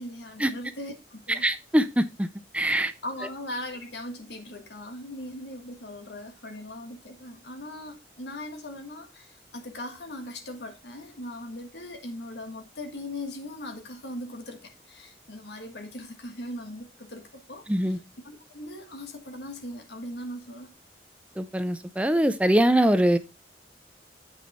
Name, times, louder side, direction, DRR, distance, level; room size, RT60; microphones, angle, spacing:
voice 1, 0.0-1.4 2.6-2.7 3.0-18.0 18.2-20.7, left 1 dB, 70° left, 1.5 m, -39 dB
voice 2, 1.4-2.3 2.5-2.9 17.7-18.0 21.4-23.2, right 1 dB, 5° right, 0.5 m, -23 dB
8.0 x 6.2 x 4.1 m
head